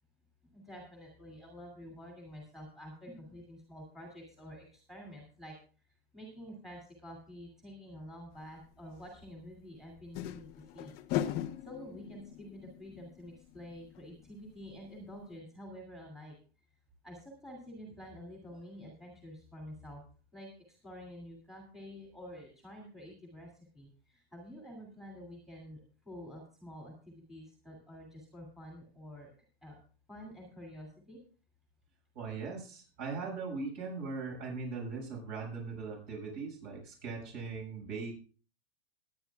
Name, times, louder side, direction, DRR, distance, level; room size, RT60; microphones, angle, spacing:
voice 1, 0.5-5.5 6.1-11.0 11.6-16.4 17.0-20.0 20.3-29.3 29.6-29.8 30.1-31.2, equal, ahead, 1 dB, 2.7 m, -49 dB
sound 1, 8.6-8.7 10.0-14.5 14.8-14.9 15.2-15.3, left 12 dB, 30° left, 0.8 m, -39 dB
voice 2, 32.1-38.1, right 4 dB, 40° right, 0 dB, 6.9 m, -39 dB
21.5 x 9.7 x 2.4 m, 0.37 s
supercardioid pair, 150°, 31 cm